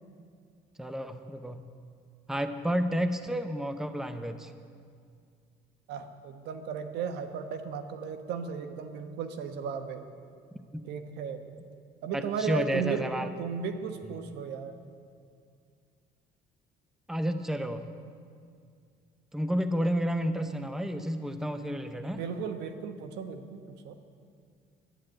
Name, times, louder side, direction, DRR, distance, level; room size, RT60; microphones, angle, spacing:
voice 1, 0.8-1.7 2.3-4.5 10.7-10.8 12.1-13.3 17.1-17.8 19.3-22.2, equal, 5° right, 9 dB, 0.7 m, -31 dB
voice 2, 5.9-10.0 10.8-11.4 12.0-13.0 13.4-14.7 22.2-23.9, right 6 dB, 80° right, 7 dB, 1.1 m, -35 dB
11.5 x 9.4 x 8.9 m, 2.2 s
cardioid pair, 110°, 17 cm